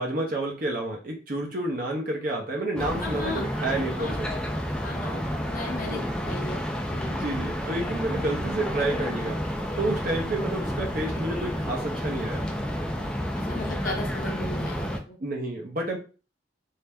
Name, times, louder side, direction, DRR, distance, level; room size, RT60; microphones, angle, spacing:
voice 1, 0.0-4.4 5.9-6.0 7.1-9.4 9.8-12.5 15.2-16.0, right 2 dB, 50° right, 0 dB, 0.8 m, -30 dB
sound 1, 2.8-15.0, equal, 5° left, 0.4 m, -30 dB
voice 2, 3.0-3.5 4.0-4.2 4.8-7.2 10.3-10.5 13.4-15.2, left 2 dB, 50° left, 3 dB, 0.8 m, -36 dB
3.3 x 2.8 x 3.4 m, 0.35 s
head